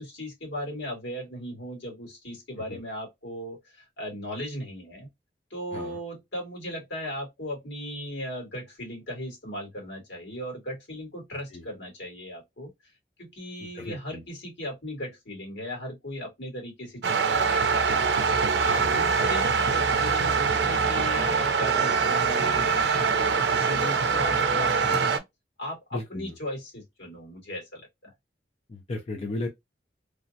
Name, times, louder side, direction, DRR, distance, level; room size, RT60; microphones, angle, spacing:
voice 1, 0.0-5.1 5.5-12.7 13.2-18.0 18.6-25.2 25.6-27.8, equal, 85° left, 2.0 m, -37 dB
voice 2, 11.3-11.6 13.6-14.2 18.8-19.0 24.8-25.0 25.9-26.3 28.7-29.5, left 2 dB, 35° left, 0.4 m, -36 dB
sound 1, 17.0-25.2, right 5 dB, 70° right, 0.5 m, -24 dB
3.2 x 2.0 x 2.6 m
head